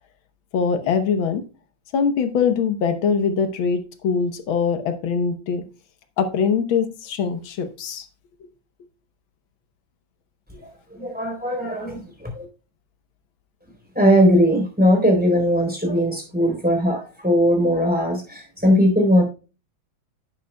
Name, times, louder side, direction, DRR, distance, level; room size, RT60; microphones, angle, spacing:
voice 1, 0.5-1.4 1.9-5.6 6.2-8.0, left 6 dB, 90° left, 9 dB, 1.8 m, -22 dB
voice 2, 10.6-12.4 13.9-19.2, equal, 5° right, 2 dB, 3.8 m, -19 dB
11.0 x 9.5 x 2.3 m, 0.33 s
omnidirectional pair, 2.1 m